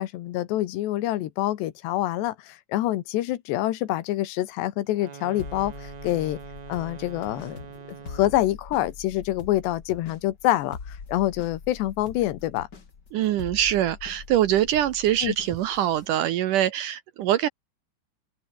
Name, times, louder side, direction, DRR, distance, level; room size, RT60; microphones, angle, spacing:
voice 1, 0.0-6.4 6.7-7.6 8.1-10.8 11.1-12.7 15.2-15.4, left 14 dB, 80° left, 3.4 m, -26 dB
sound 1, 4.9-8.5, right 6 dB, 45° right, 3.9 m, -43 dB
sound 2, 5.4-16.1, left 5 dB, 30° left, 2.2 m, -43 dB
voice 2, 13.1-17.5, right 12 dB, 75° right, 1.9 m, -23 dB
open air
omnidirectional pair, 5.0 m